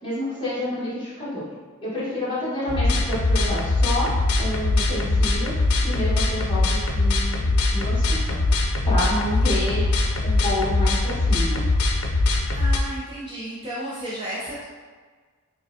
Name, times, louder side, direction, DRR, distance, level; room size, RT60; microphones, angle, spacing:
voice 1, 0.0-1.4 1.8-4.1 4.4-11.7, left 1 dB, 25° left, -10 dB, 1.3 m, -29 dB
sound 1, 2.7-12.8, left 2 dB, 85° left, 0.5 m, -22 dB
voice 2, 9.4-9.9 12.5-14.7, right 1 dB, 20° right, -7 dB, 0.5 m, -33 dB
4.9 x 2.2 x 2.7 m, 1.5 s
head